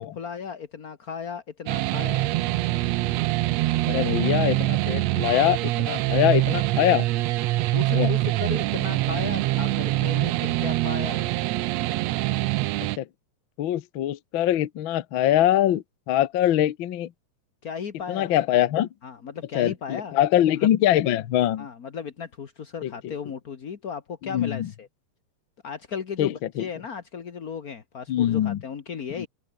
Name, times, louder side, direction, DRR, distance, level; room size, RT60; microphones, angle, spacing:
voice 1, 0.0-2.3 6.8-6.9 7.6-11.3 17.6-18.3 19.0-20.2 20.6-20.7 21.6-24.9 25.6-29.3, left 6 dB, 45° left, 1.2 m, -36 dB
sound 1, 1.7-13.0, right 17 dB, 80° right, 1.5 m, -24 dB
voice 2, 3.8-7.0 7.9-8.1 13.0-13.1 13.6-17.1 18.1-18.9 19.5-21.7 22.8-23.1 24.3-24.7 26.2-26.6 28.1-28.6 29.2-29.3, left 12 dB, 75° left, 1.1 m, -23 dB
omnidirectional pair, 3.7 m